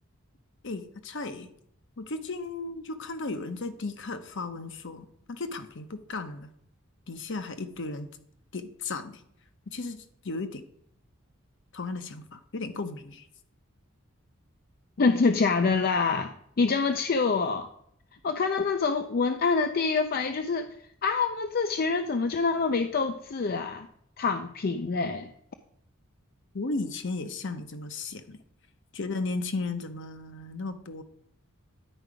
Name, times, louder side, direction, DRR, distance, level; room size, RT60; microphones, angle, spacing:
voice 1, 0.6-1.5 2.0-6.5 7.1-8.1 8.5-9.2 9.7-10.6 11.7-13.3 26.5-28.4 28.9-31.0, left 3 dB, 60° left, 9 dB, 0.9 m, -35 dB
voice 2, 15.0-17.7 18.2-20.7 21.0-23.9 24.2-25.3, left 4 dB, 45° left, 7 dB, 0.5 m, -26 dB
10.0 x 4.7 x 5.0 m, 0.70 s
head